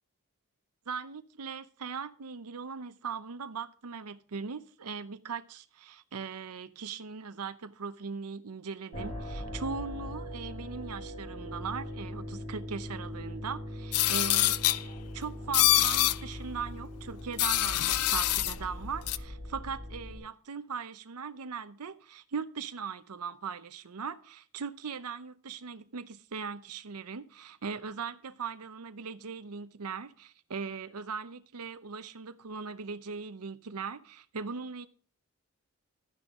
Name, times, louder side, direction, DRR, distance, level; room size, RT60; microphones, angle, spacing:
voice 1, 0.9-14.8 15.1-34.9, right 5 dB, 85° right, 0.7 m, -39 dB
sound 1, 8.9-20.2, left 1 dB, 35° left, 4.8 m, -41 dB
sound 2, 13.9-14.8 15.5-16.2 17.4-18.5 19.1-19.2, left 14 dB, 90° left, 0.6 m, -25 dB
12.5 x 9.9 x 3.6 m
head